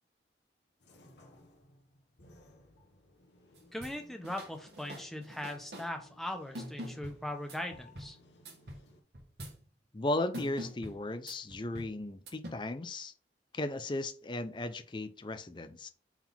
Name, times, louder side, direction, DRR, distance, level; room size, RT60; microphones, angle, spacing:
sound 1, 0.8-9.0, left 1 dB, 80° left, 1.3 m, -61 dB
sound 2, 3.6-4.0 4.2-5.9 6.6-8.1 8.5-8.9 9.1-9.6 10.3-11.9 12.3-12.5, equal, 65° right, 1.5 m, -44 dB
voice 1, 3.7-8.2, left 1 dB, ahead, 0.8 m, -40 dB
voice 2, 9.9-13.1 13.5-15.9, left 2 dB, 25° left, 0.5 m, -36 dB
4.8 x 3.6 x 5.6 m
head